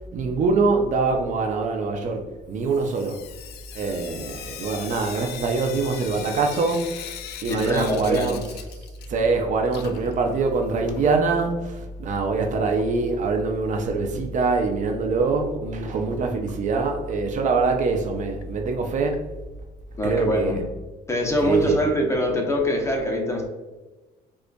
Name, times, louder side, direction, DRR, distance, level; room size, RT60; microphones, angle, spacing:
voice 1, 0.1-2.2 2.5-3.2 3.8-6.9 7.4-8.4 9.1-11.5 12.0-19.2 20.0-20.6 21.4-21.8, right 4 dB, 45° right, 0.5 m, -24 dB
Sink (filling or washing) / Drip, 2.6-9.4 9.6-11.6 12.7-12.8 13.1-13.2 13.5-13.6 16.5-16.6 17.1-17.2 17.7-17.8 18.4-18.5 19.1-19.2 20.1-20.2, left 9 dB, 75° left, 0.4 m, -40 dB
voice 2, 7.5-8.4 20.0-20.6 21.1-23.5, equal, 15° left, 0.7 m, -24 dB
4.9 x 2.4 x 2.2 m
cardioid pair, 110°, 17 cm